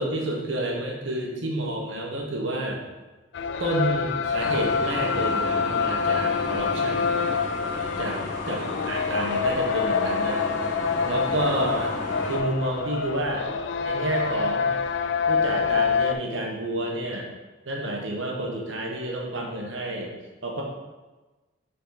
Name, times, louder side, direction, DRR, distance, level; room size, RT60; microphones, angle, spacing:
voice 1, 0.0-2.8 3.6-7.2 8.0-8.1 8.5-10.4 11.0-11.9 12.2-13.4 13.8-14.7 15.3-17.3 17.7-20.1 20.4-20.6, right 1 dB, 75° right, 0 dB, 1.3 m, -29 dB
sound 1, 3.3-16.1, left 5 dB, 65° left, 0.3 m, -26 dB
sound 2, 4.4-12.4, left 1 dB, 40° left, 1.1 m, -34 dB
7.0 x 4.1 x 4.0 m, 1.2 s
head